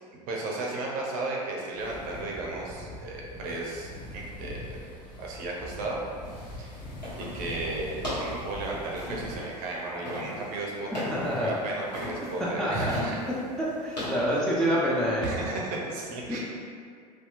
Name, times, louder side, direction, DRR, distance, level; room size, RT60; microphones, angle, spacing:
voice 1, 0.3-4.8 5.2-6.0 6.4-6.8 7.2-13.2 15.2-16.4, right 2 dB, 45° right, -2 dB, 0.6 m, -34 dB
sound 1, 1.8-9.4, left 1 dB, 25° left, 0.9 m, -42 dB
sound 2, 6.2-15.2, left 1 dB, 85° left, 0.9 m, -39 dB
voice 2, 11.1-11.5 12.6-13.0 13.6-15.3 16.3-16.4, equal, 5° left, -7 dB, 0.3 m, -27 dB
2.7 x 2.2 x 2.5 m, 2.2 s
figure-of-eight pair, 75°, 21 cm